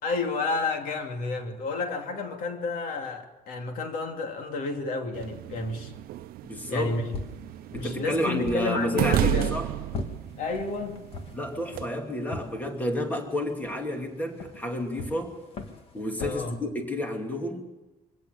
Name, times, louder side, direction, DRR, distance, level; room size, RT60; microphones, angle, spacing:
voice 1, 0.0-5.9 6.7-7.1 7.7-9.5 10.4-11.0 16.2-16.6, left 3 dB, 70° left, 2.9 m, -31 dB
sound 1, 5.1-11.8, right 14 dB, 85° right, 0.7 m, -32 dB
voice 2, 6.4-7.0 7.7-9.7 11.3-15.4 15.9-17.6, left 1 dB, 10° left, 2.5 m, -30 dB
sound 2, 6.9-16.4, left 2 dB, 40° left, 1.9 m, -42 dB
24.0 x 17.0 x 6.9 m
cardioid pair, 175°, 15 cm